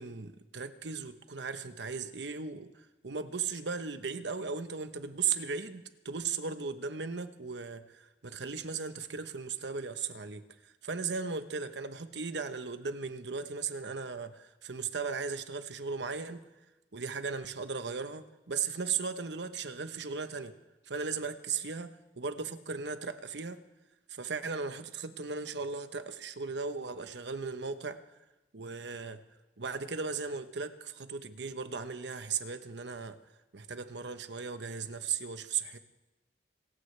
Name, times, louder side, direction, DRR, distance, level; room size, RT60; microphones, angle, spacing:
voice 1, 0.0-16.4 16.9-20.5 20.8-23.6 24.1-28.0 28.5-29.2 29.6-33.2 33.5-35.8, right 5 dB, 90° right, 10 dB, 1.0 m, -37 dB
26.5 x 14.5 x 3.3 m, 1.1 s
head